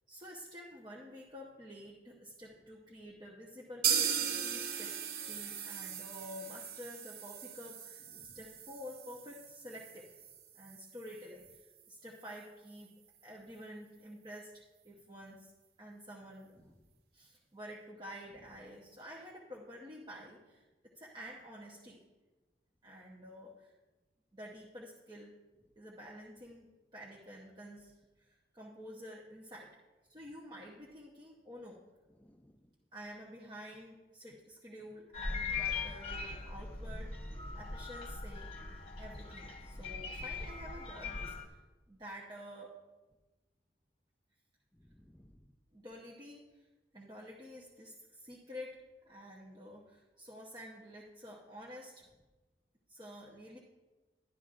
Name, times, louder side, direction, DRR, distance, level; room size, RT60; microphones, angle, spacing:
voice 1, 0.1-4.9 5.2-10.1 10.5-12.9 13.2-15.5 15.8-16.7 17.1-22.0 22.8-23.7 24.3-25.3 25.8-29.7 30.1-31.8 32.9-38.5 39.0-41.6 41.9-42.8 45.7-46.7 46.9-48.8 49.1-52.1 52.9-53.6, equal, 25° right, -4 dB, 0.9 m, -50 dB
sound 1, 3.8-11.6 11.9-12.0 12.3-12.4 12.8-12.9, right 8 dB, 60° right, 0.7 m, -38 dB
voice 2, 32.1-32.7 39.7-39.8 44.7-45.5, equal, 10° left, 8 dB, 0.4 m, -62 dB
sound 2, 35.1-41.4, left 4 dB, 30° left, 1.1 m, -40 dB
12.0 x 11.0 x 2.5 m, 1.2 s
head